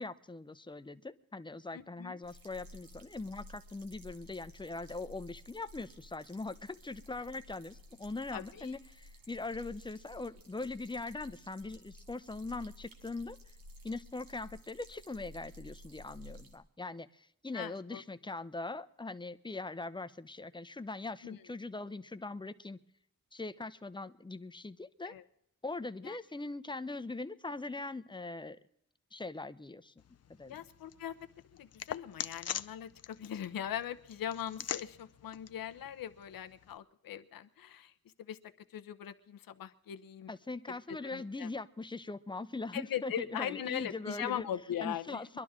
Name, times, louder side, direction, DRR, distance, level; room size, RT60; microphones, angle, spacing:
voice 1, 0.0-13.4 13.8-22.8 23.3-25.1 25.6-28.6 29.1-29.9 30.3-30.6 40.3-44.5 44.8-45.4, left 3 dB, 15° left, 10 dB, 0.7 m, -41 dB
voice 2, 1.7-2.2 8.3-8.7 17.5-18.0 21.2-21.4 25.0-25.2 26.0-26.2 30.5-31.2 31.6-37.9 38.2-38.4 38.7-40.3 41.0-41.5 42.7-45.2, left 10 dB, 90° left, 10 dB, 0.9 m, -40 dB
sound 1, 2.2-16.6, equal, 85° right, 2.1 m, -54 dB
sound 2, 30.0-36.8, left 9 dB, 50° left, 0.6 m, -45 dB
23.0 x 11.5 x 3.7 m, 0.73 s
cardioid pair, 95°, 33 cm